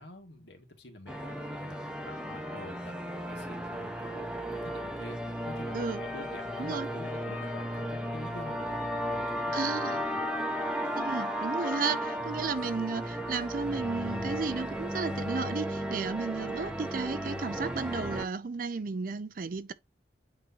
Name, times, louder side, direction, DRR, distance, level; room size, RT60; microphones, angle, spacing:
voice 1, 0.0-10.2 16.6-16.7, left 1 dB, 70° left, 1.9 m, -48 dB
sound 1, 1.1-18.3, equal, 5° right, 0.9 m, -34 dB
voice 2, 9.5-10.0 10.9-19.7, right 4 dB, 50° right, 0.5 m, -33 dB
8.6 x 4.2 x 2.8 m
head